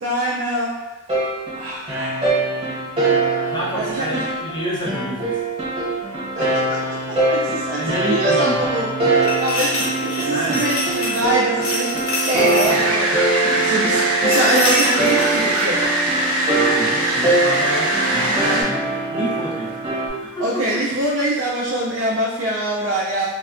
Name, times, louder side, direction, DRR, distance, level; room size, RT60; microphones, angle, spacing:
voice 1, 0.0-0.7 1.5-2.2 3.7-4.2 6.3-6.8 7.1-11.9 12.3-15.8 18.5-18.7 20.4-23.3, right 1 dB, 55° right, -5 dB, 0.3 m, -24 dB
sound 1, 1.1-20.1, right 2 dB, 25° right, 0.9 m, -22 dB
voice 2, 3.5-5.4 7.8-8.6 10.3-10.6 12.6-12.8 16.5-19.7 20.0-20.8, equal, 20° left, -6 dB, 0.6 m, -29 dB
sound 2, 9.2-11.3 11.6-12.8 14.3-15.7, left 1 dB, 60° left, 0.6 m, -26 dB
sound 3, 12.6-18.6, right 1 dB, 90° right, 0.8 m, -21 dB
3.4 x 2.1 x 2.4 m, 1.1 s
head